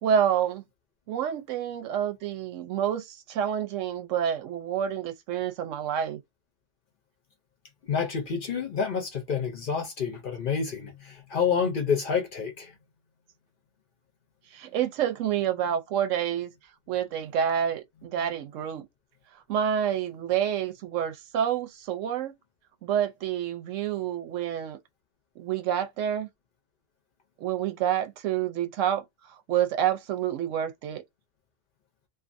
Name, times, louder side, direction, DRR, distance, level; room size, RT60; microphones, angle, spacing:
voice 1, 0.0-0.6 1.1-6.2 14.5-16.5 16.9-18.8 19.5-22.3 22.8-24.8 25.4-26.3 27.4-29.0 29.5-31.0, right 9 dB, 80° right, 0.9 m, -28 dB
voice 2, 7.8-12.7, left 6 dB, 50° left, 0.7 m, -28 dB
2.5 x 2.5 x 2.5 m
omnidirectional pair, 1.3 m